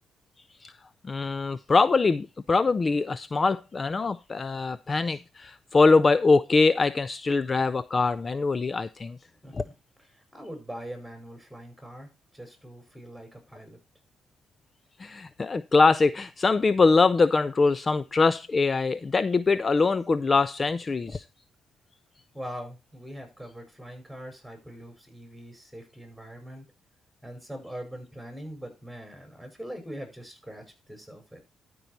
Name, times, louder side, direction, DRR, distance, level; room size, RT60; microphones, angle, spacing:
voice 1, 1.0-9.2 9.5-9.6 15.0-21.2, left 4 dB, 30° left, 16 dB, 0.4 m, -23 dB
voice 2, 9.4-9.7 10.1-13.8 22.3-26.7 27.2-31.4, equal, ahead, 5 dB, 5.1 m, -42 dB
12.5 x 5.4 x 4.3 m, 0.27 s
cardioid pair, 90°, 0 cm